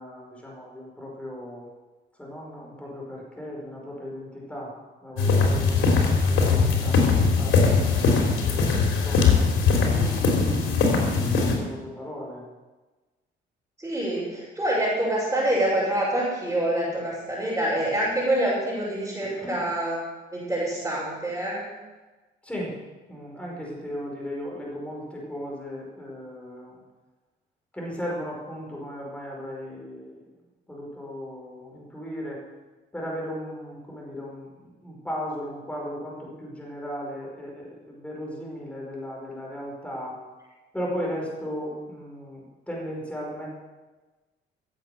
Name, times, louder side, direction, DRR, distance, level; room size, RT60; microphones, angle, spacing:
voice 1, 0.0-1.7 2.2-4.7 5.0-10.2 11.3-12.5 16.8-17.0 19.2-19.7 22.4-22.8 23.1-26.8 27.7-30.2 30.7-32.4 32.9-40.2 40.7-43.5, equal, 5° left, -3 dB, 5.4 m, -36 dB
sound 1, 5.2-11.6, left 4 dB, 80° left, 3.3 m, -21 dB
voice 2, 13.8-20.0 20.3-21.6, right 1 dB, 15° right, -9 dB, 5.8 m, -26 dB
16.0 x 8.1 x 7.0 m, 1.2 s
cardioid pair, 90°, 20 cm